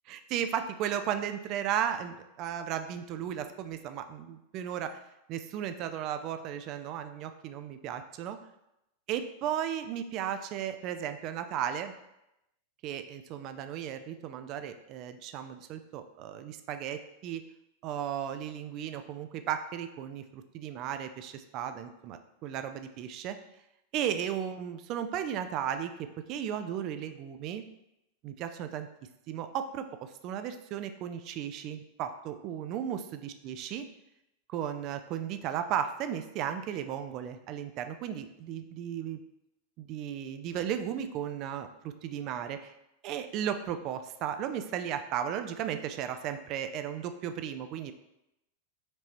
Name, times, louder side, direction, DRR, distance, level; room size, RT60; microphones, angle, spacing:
voice 1, 0.3-5.0 5.3-8.4 9.1-11.9 12.8-17.4 17.8-23.4 23.9-27.6 28.2-28.9 29.3-33.9 34.5-39.2 39.8-42.7 43.0-47.9, right 9 dB, 40° right, 9 dB, 0.3 m, -35 dB
4.4 x 2.8 x 2.9 m, 0.86 s
figure-of-eight pair, 90°, 0 cm